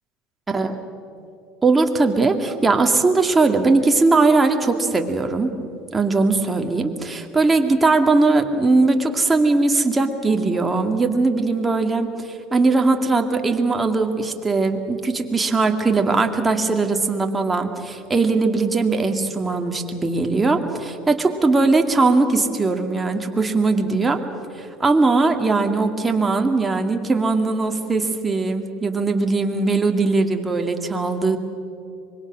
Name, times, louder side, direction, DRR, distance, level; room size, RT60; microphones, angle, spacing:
voice 1, 1.6-5.5 5.9-24.2 24.6-31.4, right 3 dB, 20° right, 4 dB, 2.3 m, -20 dB
25.0 x 22.5 x 6.2 m, 2.8 s
hypercardioid pair, 75°, 0 cm